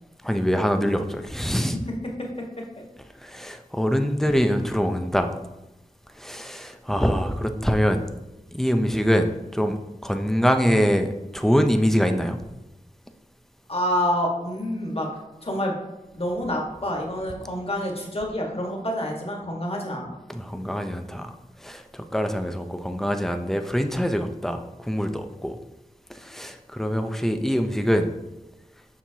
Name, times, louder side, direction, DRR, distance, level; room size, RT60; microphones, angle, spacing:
voice 1, 0.2-1.8 3.2-5.3 6.1-8.1 8.5-12.4 20.3-25.6 26.1-28.1, equal, 5° left, 6 dB, 0.6 m, -24 dB
voice 2, 13.7-15.1 15.4-15.8 16.1-20.2, equal, 45° left, -1 dB, 1.6 m, -27 dB
7.1 x 5.8 x 2.8 m, 1.0 s
wide cardioid pair, 50°, 14 cm